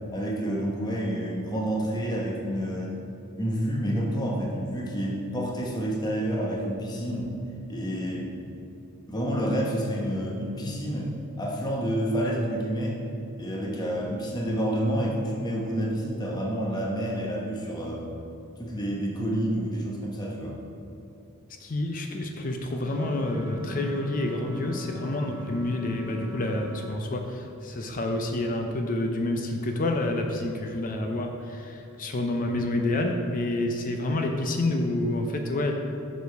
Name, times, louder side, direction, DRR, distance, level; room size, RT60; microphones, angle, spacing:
voice 1, 0.1-3.0 3.4-7.3 7.7-8.3 9.1-13.0 13.4-18.1 18.6-20.6, equal, 20° left, -2 dB, 0.9 m, -29 dB
voice 2, 21.6-35.7, left 1 dB, 40° left, 3 dB, 0.5 m, -28 dB
sound 1, 22.8-26.9, left 2 dB, 20° right, 0.9 m, -42 dB
6.9 x 5.1 x 4.6 m, 2.8 s
head